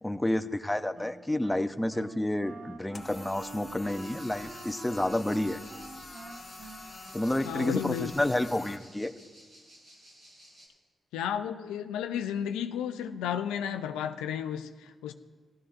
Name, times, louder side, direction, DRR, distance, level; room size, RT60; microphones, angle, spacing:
voice 1, 0.0-5.6 7.1-9.1, left 1 dB, 15° left, 11 dB, 0.6 m, -30 dB
Wind instrument woodwind instrument, 0.9-8.4, right 3 dB, 60° right, 0.8 m, -47 dB
sound 1, 2.9-8.7, left 3 dB, 35° left, 1.4 m, -46 dB
sound 2, 3.8-10.7, right 1 dB, 80° right, 3.3 m, -55 dB
voice 2, 7.4-8.1 11.1-15.1, left 9 dB, 90° left, 8 dB, 0.4 m, -33 dB
15.5 x 13.0 x 2.5 m, 1.4 s
supercardioid pair, 40°, 0 cm